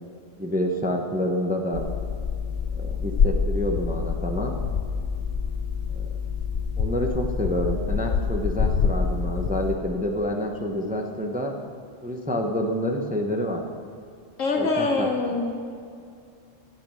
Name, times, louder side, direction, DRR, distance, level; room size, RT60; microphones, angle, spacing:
voice 1, 0.4-1.9 2.7-4.5 6.0-6.1 6.8-11.5 12.0-13.6 14.6-15.1, equal, 10° right, 2 dB, 0.7 m, -28 dB
sound 1, 1.7-9.8, left 6 dB, 55° left, 0.9 m, -26 dB
voice 2, 14.4-15.5, left 3 dB, 80° left, 1 dB, 2.0 m, -24 dB
12.0 x 8.6 x 6.2 m, 2.3 s
omnidirectional pair, 1.3 m